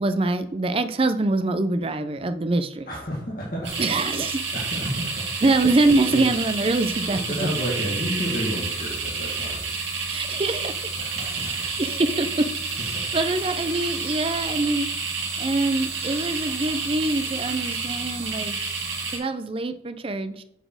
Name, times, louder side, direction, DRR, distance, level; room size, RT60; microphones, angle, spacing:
voice 1, 0.0-2.9 3.8-4.4 5.4-7.2 10.1-10.7 11.3-11.5 11.8-12.5 13.1-14.9 15.4-18.6 19.1-20.4, right 2 dB, 30° right, 10 dB, 0.5 m, -24 dB
voice 2, 2.9-3.7 4.5-5.2 6.1-6.2 7.1-9.6 11.0-11.5 12.9-13.0, equal, 50° left, -6 dB, 2.1 m, -31 dB
sound 1, 3.6-19.2, right 4 dB, 80° right, 2.6 m, -29 dB
7.9 x 4.3 x 6.3 m, 0.77 s
head